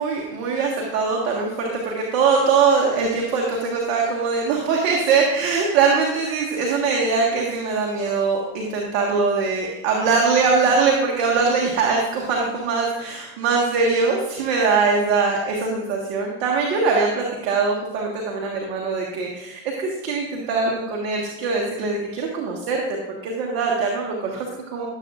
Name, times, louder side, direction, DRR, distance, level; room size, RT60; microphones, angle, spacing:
voice 1, 0.0-24.9, right 4 dB, 70° right, -1 dB, 1.6 m, -22 dB
14.5 x 7.5 x 2.5 m, 0.99 s
hypercardioid pair, 75°, 40 cm